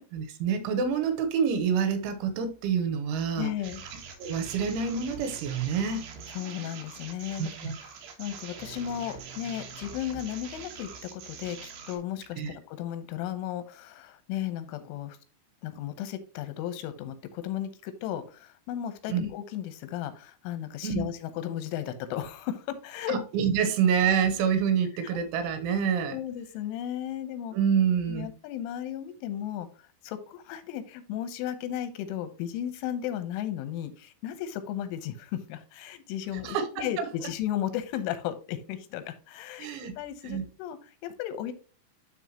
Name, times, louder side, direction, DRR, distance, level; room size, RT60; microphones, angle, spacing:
voice 1, 0.1-3.5 4.2-6.1 7.4-7.8 12.4-12.6 19.1-19.2 20.8-21.1 23.1-26.2 27.5-28.3 36.4-37.1 39.6-40.5, right 7 dB, 85° right, 3.5 m, -27 dB
voice 2, 3.4-3.8 6.3-15.2 15.6-23.2 25.0-25.2 25.7-25.8 26.1-27.6 28.1-39.7 40.0-41.5, left 11 dB, 90° left, 3.4 m, -35 dB
sound 1, 3.6-12.0, right 6 dB, 70° right, 3.3 m, -43 dB
12.0 x 3.9 x 2.9 m
omnidirectional pair, 5.4 m